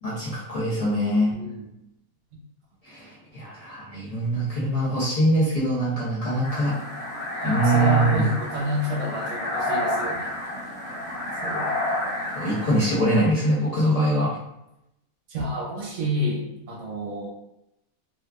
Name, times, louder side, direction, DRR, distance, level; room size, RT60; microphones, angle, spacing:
voice 1, 0.0-1.3 2.8-6.7 7.4-8.2 12.3-14.4, right 1 dB, 65° left, -7 dB, 0.3 m, -23 dB
voice 2, 1.3-1.7 7.4-10.3 11.4-11.7 13.7-14.1 15.3-17.3, equal, 65° right, -3 dB, 1.1 m, -29 dB
sound 1, 6.4-12.9, left 1 dB, 30° left, 0.7 m, -29 dB
2.9 x 2.3 x 2.3 m, 0.85 s
omnidirectional pair, 1.5 m